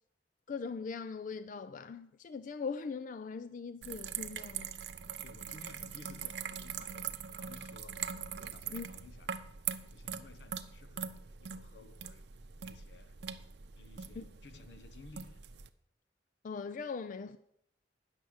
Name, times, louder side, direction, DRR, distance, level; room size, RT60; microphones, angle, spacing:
voice 1, 0.5-4.7 8.7-8.9 14.2-14.3 16.4-17.4, left 5 dB, 45° left, 0.4 m, -40 dB
sound 1, 3.8-15.7, right 8 dB, 70° right, 0.7 m, -42 dB
voice 2, 5.2-8.0 8.4-9.4 9.9-13.2 13.8-15.4, left 3 dB, 80° left, 0.9 m, -56 dB
10.0 x 6.7 x 7.8 m
head